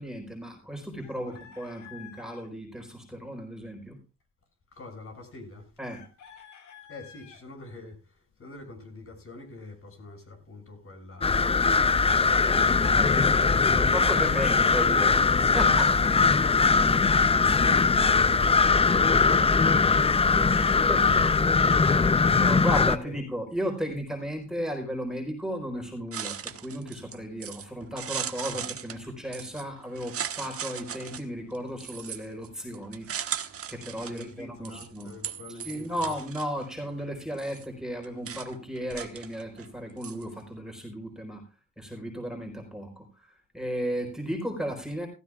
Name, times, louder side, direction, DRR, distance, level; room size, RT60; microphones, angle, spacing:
voice 1, 0.0-4.0 5.8-6.0 12.9-13.1 13.8-15.2 15.5-16.5 20.5-35.1 35.5-41.4 41.8-45.1, equal, ahead, 4.3 m, -35 dB
Chicken rooster, 1.0-2.5 5.9-7.4 11.9-13.5 17.0-18.5, left 9 dB, 70° left, 3.3 m, -50 dB
voice 2, 4.7-5.7 6.9-14.6 16.3-20.4 23.0-23.1 28.4-28.6 34.1-36.1, left 2 dB, 45° left, 6.7 m, -45 dB
sound 1, 11.2-23.0, left 4 dB, 20° left, 0.6 m, -21 dB
sound 2, 26.1-40.6, right 8 dB, 50° right, 1.4 m, -39 dB
16.5 x 15.5 x 2.4 m
cardioid pair, 90°, 30 cm